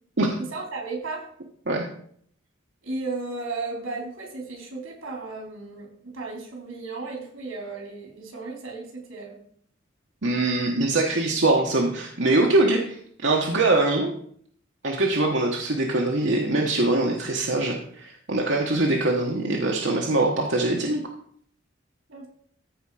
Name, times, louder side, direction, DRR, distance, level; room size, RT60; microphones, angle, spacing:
voice 1, 0.5-1.3 2.8-9.4 22.1-22.3, right 3 dB, 90° right, 0 dB, 3.7 m, -34 dB
voice 2, 10.2-14.1 14.8-21.0, right 2 dB, 65° right, 0 dB, 1.1 m, -23 dB
14.0 x 5.1 x 4.9 m, 0.63 s
head